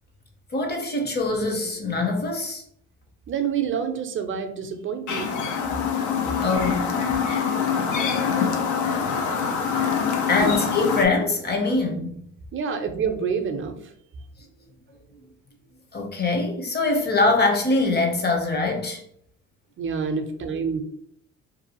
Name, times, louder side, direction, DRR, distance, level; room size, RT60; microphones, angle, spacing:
voice 1, 0.5-2.6 6.4-6.9 10.3-12.2 15.9-19.0, left 3 dB, 35° left, 0.8 m, -23 dB
voice 2, 3.3-5.3 10.4-10.5 12.5-13.9 19.8-20.8, right 6 dB, 40° right, 0.5 m, -27 dB
Chirp tweet, 5.1-11.0, left 6 dB, 75° left, 0.5 m, -24 dB
2.6 x 2.4 x 2.8 m
cardioid pair, 90°, 30 cm